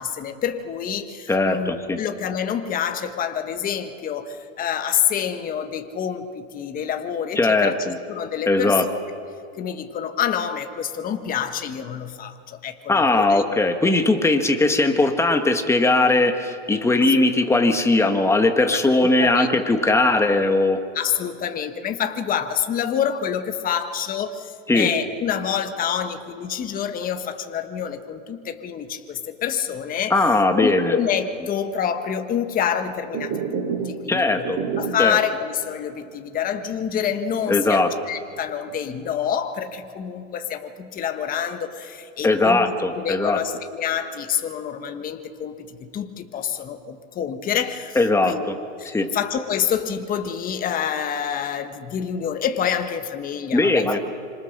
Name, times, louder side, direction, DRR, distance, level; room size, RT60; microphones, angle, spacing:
voice 1, 0.0-8.8 9.6-13.6 19.0-19.5 20.9-30.3 30.6-34.4 34.8-48.4 48.8-53.9, left 8 dB, 25° left, 7 dB, 1.4 m, -27 dB
voice 2, 1.3-2.0 7.4-8.0 8.5-8.8 12.9-20.8 24.7-24.9 30.1-30.9 34.1-34.6 35.0-35.2 37.5-37.9 42.2-43.4 47.9-48.5 48.8-49.1 53.5-54.0, left 2 dB, 5° left, 6 dB, 1.5 m, -19 dB
sound 1, 33.0-35.2 35.6-35.7 36.0-36.2 36.7-38.1 38.4-39.0, right 6 dB, 40° right, 6.0 m, -30 dB
26.0 x 26.0 x 6.6 m, 2.4 s
supercardioid pair, 140°, 37 cm